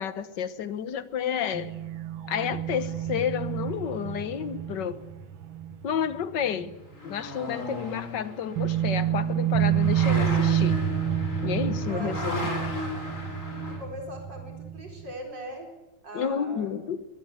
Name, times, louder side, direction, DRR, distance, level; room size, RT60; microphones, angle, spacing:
voice 1, 0.0-1.7 2.3-5.0 5.8-6.8 7.0-10.8 11.4-12.5 16.1-17.1, left 8 dB, 65° left, 1.7 m, -30 dB
sound 1, 1.5-7.0 7.2-7.4 8.6-15.1, right 10 dB, 75° right, 2.0 m, -29 dB
sound 2, 6.8-13.8, left 2 dB, 40° left, 5.0 m, -36 dB
voice 2, 11.9-13.1 13.7-15.7 16.0-16.8, equal, 60° right, 5.1 m, -41 dB
22.5 x 22.0 x 8.2 m
omnidirectional pair, 2.2 m